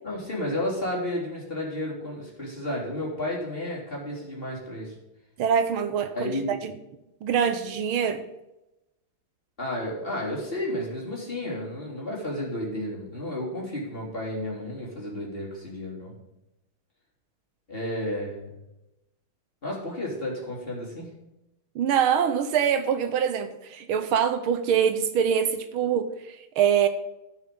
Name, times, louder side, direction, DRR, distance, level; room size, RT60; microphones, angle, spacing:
voice 1, 0.0-5.0 6.1-6.5 9.6-16.1 17.7-18.5 19.6-21.1, left 1 dB, 25° left, -4 dB, 3.6 m, -32 dB
voice 2, 5.4-6.7 7.2-8.2 21.7-26.9, right 8 dB, 75° right, 9 dB, 1.7 m, -24 dB
14.0 x 7.3 x 5.4 m, 0.92 s
omnidirectional pair, 2.3 m